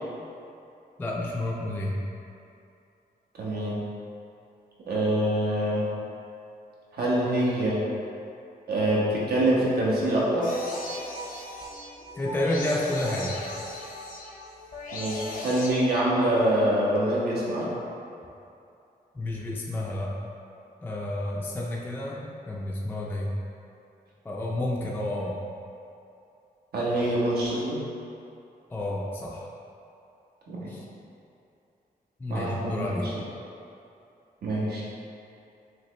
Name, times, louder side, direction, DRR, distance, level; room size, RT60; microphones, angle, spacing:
voice 1, 1.0-1.9 12.2-13.4 19.1-20.1 20.8-23.3 24.2-25.4 28.7-29.5 30.7-30.8 32.2-33.1, left 1 dB, 10° left, -3 dB, 0.3 m, -30 dB
voice 2, 3.3-3.8 4.9-5.9 6.9-7.8 8.7-10.5 14.9-17.7 26.7-27.8 30.5-30.7 32.3-33.1 34.4-34.8, right 1 dB, 80° right, -6 dB, 1.1 m, -25 dB
sound 1, 10.4-15.7, left 2 dB, 60° left, 0.6 m, -38 dB
5.6 x 2.9 x 3.1 m, 2.7 s
wide cardioid pair, 165°, 16 cm